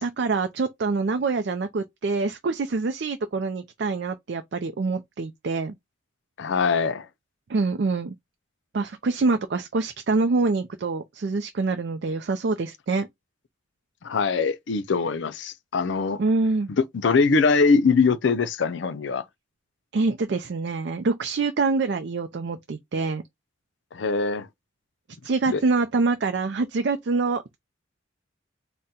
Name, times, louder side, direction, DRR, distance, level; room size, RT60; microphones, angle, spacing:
voice 1, 0.0-5.7 7.5-8.1 8.7-13.1 16.2-16.7 19.9-23.2 25.2-27.6, right 3 dB, 60° right, 0.4 m, -25 dB
voice 2, 6.4-7.1 14.0-16.2 16.7-19.2 23.9-24.5 25.5-25.6, left 4 dB, 70° left, 0.5 m, -22 dB
4.1 x 2.1 x 3.6 m
head